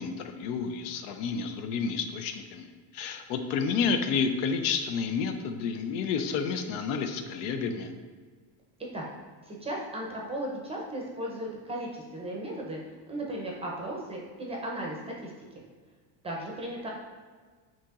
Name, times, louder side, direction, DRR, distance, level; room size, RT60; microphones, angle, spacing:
voice 1, 0.0-2.7 2.9-7.9, left 5 dB, 75° left, 7 dB, 0.6 m, -30 dB
voice 2, 9.4-12.8 13.1-15.3 16.2-16.9, right 1 dB, 15° right, -2 dB, 0.6 m, -36 dB
7.3 x 3.0 x 2.4 m, 1.5 s
cardioid pair, 145°, 45 cm